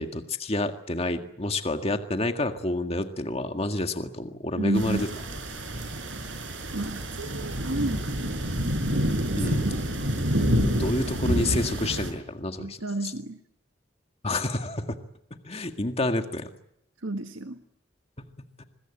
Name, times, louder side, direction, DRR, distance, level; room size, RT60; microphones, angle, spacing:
voice 1, 0.0-5.1 9.4-9.7 10.8-13.1 14.2-15.0 15.4-16.5, left 2 dB, 30° left, 6 dB, 1.9 m, -29 dB
voice 2, 4.6-5.1 6.7-8.5 9.3-9.8 12.6-13.4 17.0-17.6, right 2 dB, 90° right, 7 dB, 1.6 m, -31 dB
sound 1, 4.7-12.1, equal, 70° right, 5.5 m, -28 dB
25.5 x 21.5 x 9.0 m, 0.76 s
head